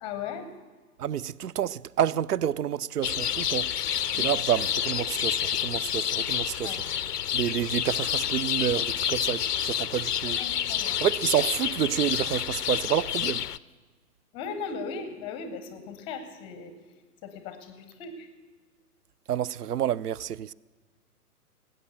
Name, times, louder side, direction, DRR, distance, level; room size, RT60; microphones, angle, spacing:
voice 1, 0.0-0.5 4.1-4.2 6.6-6.8 10.4-11.0 14.3-16.7 17.2-18.3, left 5 dB, 10° left, 0.7 m, -37 dB
voice 2, 1.0-3.7 4.1-6.8 7.3-10.4 11.0-13.4 19.3-20.5, right 10 dB, 80° right, 0.5 m, -29 dB
sound 1, 3.0-13.6, left 10 dB, 80° left, 0.6 m, -29 dB
19.0 x 8.8 x 6.6 m
figure-of-eight pair, 125°, 46 cm